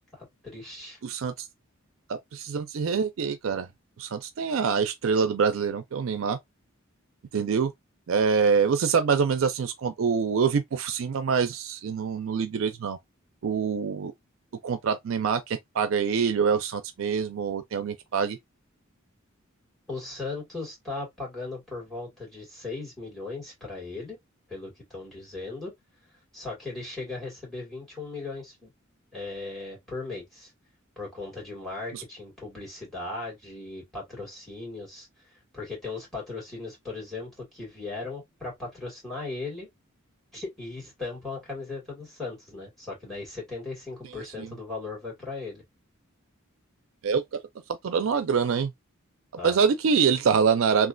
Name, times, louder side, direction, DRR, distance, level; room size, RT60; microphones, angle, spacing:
voice 1, 0.1-1.0 19.9-24.2 24.5-25.7 26.3-28.7 29.1-30.5 31.0-35.1 35.5-39.7 40.3-45.6 49.4-49.6, left 3 dB, ahead, 1.9 m, -37 dB
voice 2, 1.0-1.3 2.1-3.7 4.0-6.4 7.3-7.7 8.1-13.0 13.4-14.1 14.6-18.4 31.9-32.0 44.4-44.5 47.0-47.4 47.8-48.7 49.4-50.9, right 6 dB, 65° right, 0.4 m, -25 dB
3.1 x 2.4 x 2.5 m
head